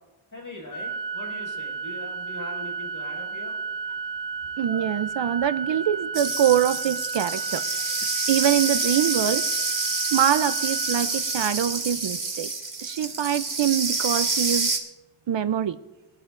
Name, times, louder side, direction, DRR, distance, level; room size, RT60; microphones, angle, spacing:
voice 1, 0.3-3.6, left 1 dB, 40° left, 0 dB, 5.1 m, -40 dB
Organ, 0.7-11.8, right 5 dB, 85° left, 2.8 m, -33 dB
voice 2, 4.6-7.6 8.3-9.5 10.1-12.5 12.8-14.7 15.3-15.8, right 10 dB, 65° right, 13 dB, 0.5 m, -24 dB
sound 1, 6.1-14.8, right 3 dB, 40° right, 1.9 m, -27 dB
22.5 x 11.5 x 2.5 m, 1.1 s
wide cardioid pair, 80°, 49 cm